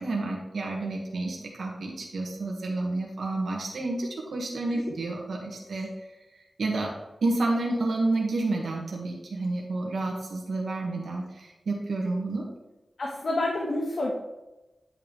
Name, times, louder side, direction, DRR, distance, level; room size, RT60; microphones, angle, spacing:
voice 1, 0.0-5.9 6.6-6.9 7.2-12.5, right 2 dB, 85° right, -1 dB, 1.7 m, -30 dB
voice 2, 13.0-14.1, left 2 dB, 65° left, -2 dB, 1.4 m, -29 dB
10.5 x 5.9 x 3.4 m, 1.0 s
wide cardioid pair, 115°, 0 cm